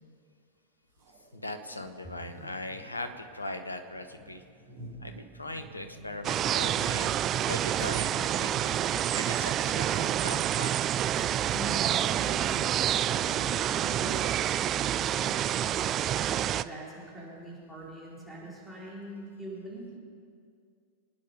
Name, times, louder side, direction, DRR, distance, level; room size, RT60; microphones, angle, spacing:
sound 1, 1.0-7.3 7.8-7.9 8.4-8.7 9.1-9.6 9.9-12.9 13.3-15.3, right 1 dB, 45° right, 4.8 m, -51 dB
voice 1, 1.3-4.4 5.0-10.7, left 1 dB, 80° left, 8 dB, 1.1 m, -40 dB
sound 2, 6.2-16.6, right 11 dB, 30° right, 0.4 m, -28 dB
voice 2, 11.5-14.6 14.9-20.0, right 2 dB, ahead, -8 dB, 4.3 m, -42 dB
25.0 x 9.8 x 5.3 m, 2.3 s
figure-of-eight pair, 90°, 0 cm